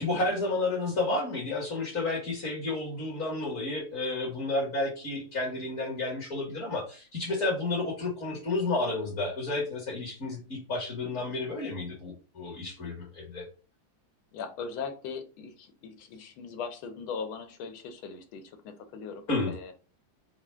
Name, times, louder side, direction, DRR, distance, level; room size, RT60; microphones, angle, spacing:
voice 1, 0.0-13.4 19.3-19.5, left 2 dB, 45° left, -3 dB, 1.6 m, -31 dB
voice 2, 11.0-11.3 14.3-19.7, left 5 dB, 85° left, 7 dB, 1.6 m, -40 dB
4.7 x 2.0 x 4.3 m, 0.36 s
omnidirectional pair, 2.2 m